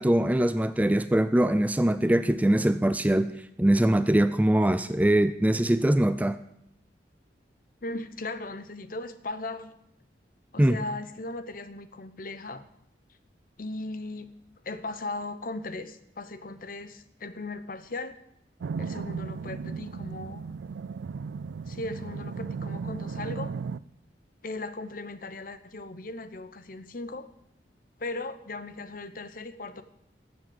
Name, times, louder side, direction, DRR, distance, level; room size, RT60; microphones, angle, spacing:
voice 1, 0.0-3.3 3.6-6.4 10.6-10.8, right 1 dB, 10° right, 12 dB, 0.4 m, -22 dB
voice 2, 7.8-9.7 10.5-12.7 13.6-14.3 14.6-18.2 18.8-20.4 21.7-23.5 24.4-27.3 28.0-29.8, left 2 dB, 50° left, 12 dB, 0.9 m, -37 dB
sound 1, 18.6-23.8, right 5 dB, 85° right, 0.4 m, -35 dB
13.0 x 7.4 x 7.8 m, 0.76 s
head